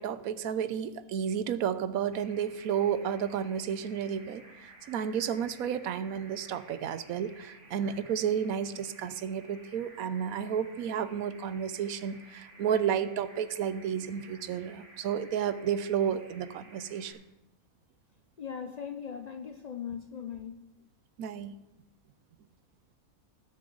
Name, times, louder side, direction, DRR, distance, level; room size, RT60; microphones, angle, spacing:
voice 1, 0.0-17.1 21.2-21.6, right 8 dB, 75° right, 13 dB, 1.1 m, -32 dB
sound 1, 2.1-17.1, right 2 dB, 55° right, 1.9 m, -55 dB
voice 2, 18.4-20.6, left 7 dB, 75° left, 6 dB, 0.3 m, -39 dB
19.0 x 6.9 x 3.9 m, 0.94 s
omnidirectional pair, 1.5 m